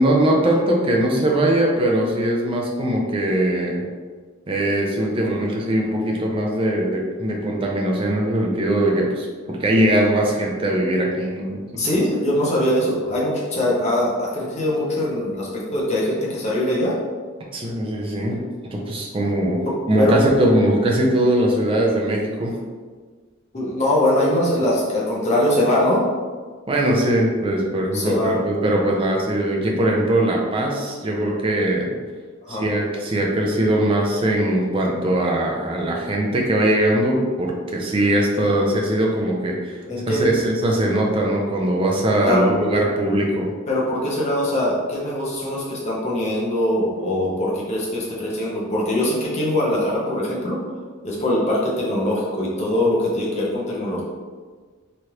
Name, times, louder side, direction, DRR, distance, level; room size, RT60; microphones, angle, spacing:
voice 1, 0.0-3.8 4.5-11.9 17.5-18.4 18.7-19.6 19.9-22.6 26.7-32.0 32.5-43.5, right 1 dB, 25° right, -1 dB, 0.4 m, -21 dB
voice 2, 11.8-16.9 19.7-20.2 23.5-26.0 27.9-28.4 32.4-32.6 39.9-40.3 42.2-42.5 43.7-50.6 51.0-54.0, left 1 dB, 35° left, -4 dB, 0.7 m, -22 dB
3.1 x 2.4 x 2.9 m, 1.5 s
head